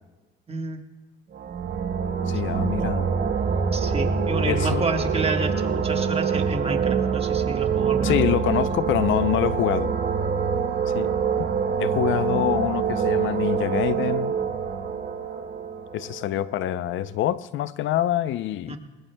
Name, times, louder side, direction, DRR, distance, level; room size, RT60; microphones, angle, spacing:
voice 1, 0.5-0.8 3.7-8.2 18.7-18.8, right 3 dB, 30° right, 1.4 m, -30 dB
sound 1, 1.3-16.9, right 6 dB, 55° right, 1.3 m, -25 dB
voice 2, 2.3-3.1 4.4-4.8 8.0-9.9 10.9-11.5 11.8-14.3 15.9-18.8, left 13 dB, 80° left, 0.5 m, -26 dB
21.0 x 19.5 x 2.2 m
cardioid pair, 90°, 20 cm